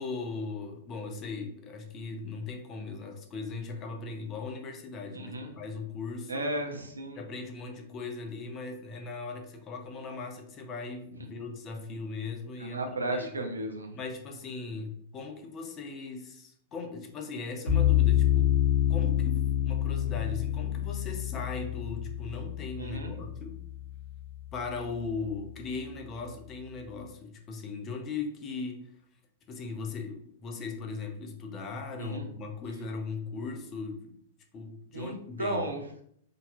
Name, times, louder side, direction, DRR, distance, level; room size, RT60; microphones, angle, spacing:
voice 1, 0.0-6.5 7.1-13.3 13.9-18.5 18.9-23.6 24.5-28.9 29.5-34.0 34.5-35.6, left 4 dB, 30° left, 3 dB, 0.7 m, -38 dB
voice 2, 5.1-5.5 6.3-7.2 12.6-13.9 22.8-23.1 32.0-32.3 34.9-35.8, right 1 dB, 80° right, 3 dB, 0.6 m, -34 dB
sound 1, 17.7-24.8, left 11 dB, 80° left, 1.1 m, -27 dB
3.8 x 2.8 x 2.7 m, 0.67 s
figure-of-eight pair, 100°, 0 cm